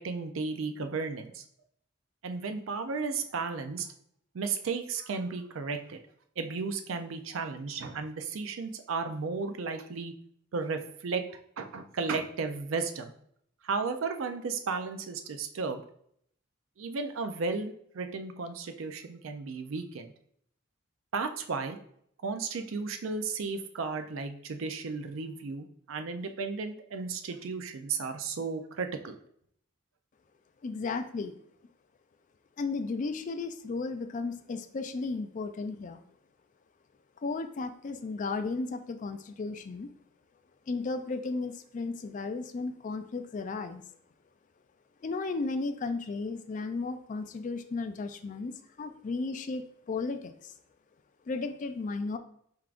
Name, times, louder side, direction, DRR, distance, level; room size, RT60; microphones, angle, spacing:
voice 1, 0.0-1.4 2.2-3.9 4.3-6.0 6.4-10.1 10.5-11.2 11.6-13.1 13.6-15.8 16.8-20.1 21.1-21.8 22.2-29.2, right 4 dB, 75° right, 7 dB, 0.5 m, -34 dB
voice 2, 30.6-31.3 32.6-36.0 37.2-39.9 40.7-43.8 45.0-50.5 51.3-52.2, left 3 dB, 40° left, 9 dB, 0.3 m, -34 dB
4.6 x 3.5 x 2.4 m, 0.68 s
head